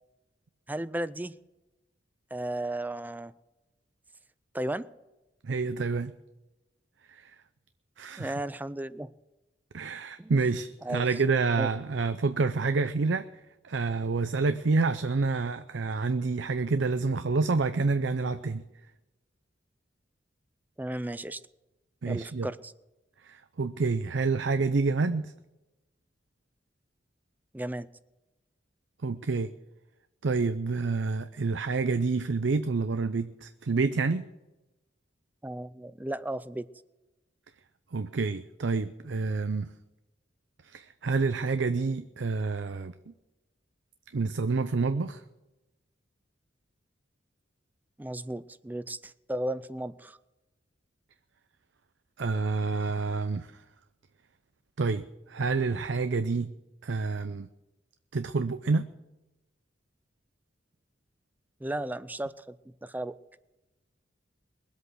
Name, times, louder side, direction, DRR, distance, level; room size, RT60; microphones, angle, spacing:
voice 1, 0.7-1.4 2.3-3.3 4.5-4.9 8.2-9.1 10.2-10.3 10.8-11.0 11.6-11.7 20.8-21.4 22.1-22.7 27.5-27.9 35.4-36.7 48.0-50.2 61.6-62.6 62.8-63.2, right 1 dB, 10° right, 15 dB, 0.4 m, -34 dB
voice 2, 5.4-6.1 7.1-7.3 8.0-8.3 9.7-13.3 13.6-18.6 22.0-22.5 23.2-25.3 29.0-29.5 30.2-34.2 37.9-39.7 40.6-43.1 44.1-45.2 52.2-53.5 54.8-56.5 56.8-57.5 58.1-58.9, right 4 dB, 70° right, 11 dB, 0.6 m, -28 dB
21.5 x 8.2 x 6.3 m, 1.0 s
head